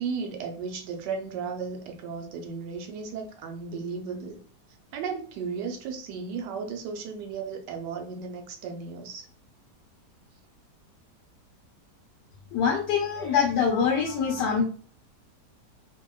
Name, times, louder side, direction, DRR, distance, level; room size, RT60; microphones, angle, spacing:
voice 1, 0.0-4.4 4.9-9.3, right 5 dB, 80° right, 4 dB, 1.2 m, -35 dB
voice 2, 12.5-14.6, left 6 dB, 75° left, -2 dB, 1.3 m, -24 dB
2.8 x 2.7 x 2.2 m, 0.42 s
omnidirectional pair, 1.8 m